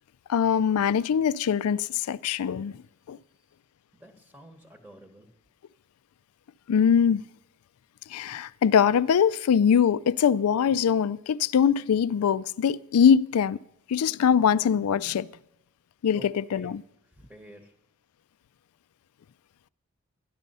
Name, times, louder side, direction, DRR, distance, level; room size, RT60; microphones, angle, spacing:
voice 1, 0.3-2.7 3.1-3.2 6.7-7.2 8.1-13.6 13.9-15.3 16.0-16.8, left 7 dB, 75° left, 0.4 m, -22 dB
voice 2, 3.9-5.3 16.1-16.7 17.1-17.7, right 1 dB, 5° right, 1.0 m, -50 dB
12.5 x 10.5 x 5.4 m
head